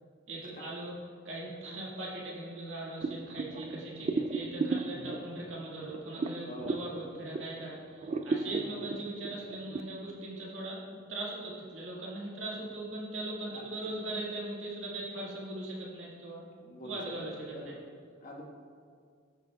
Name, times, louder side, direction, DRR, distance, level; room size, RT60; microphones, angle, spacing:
voice 1, 0.3-0.9 1.2-10.8 11.1-16.4 16.8-17.4, right 2 dB, 75° right, -5 dB, 1.9 m, -40 dB
sound 1, 3.0-7.6 8.0-9.8, right 3 dB, 35° right, 0.3 m, -35 dB
voice 2, 6.4-6.8 8.6-8.8 13.5-13.7 16.6-17.0 17.3-17.8 18.2-18.4, equal, 45° left, -3 dB, 1.5 m, -45 dB
14.0 x 7.4 x 2.3 m, 2.1 s
head